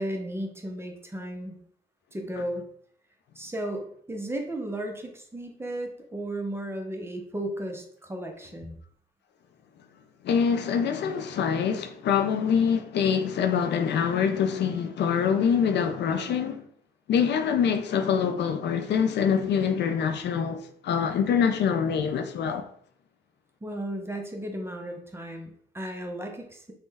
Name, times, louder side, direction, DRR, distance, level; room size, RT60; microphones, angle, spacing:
voice 1, 0.0-1.6 2.1-2.6 3.4-8.8 23.6-26.7, right 1 dB, 10° right, 0.5 m, -34 dB
voice 2, 10.2-16.6 17.1-22.7, left 7 dB, 60° left, 0.4 m, -25 dB
3.0 x 2.2 x 3.3 m
cardioid pair, 90°, 20 cm